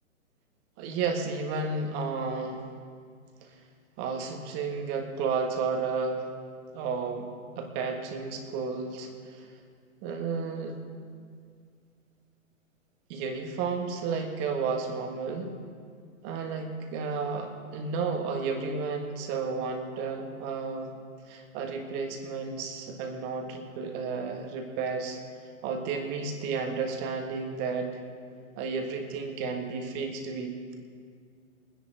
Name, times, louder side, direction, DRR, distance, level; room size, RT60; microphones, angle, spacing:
voice 1, 0.8-2.6 4.0-6.3 6.7-7.3 7.6-9.4 10.0-10.8 13.1-15.5 16.2-20.9 21.3-25.2 25.6-28.0 28.6-30.8, right 4 dB, 25° right, 3 dB, 1.6 m, -32 dB
23.0 x 10.5 x 3.9 m, 2.1 s
figure-of-eight pair, 125°, 40 cm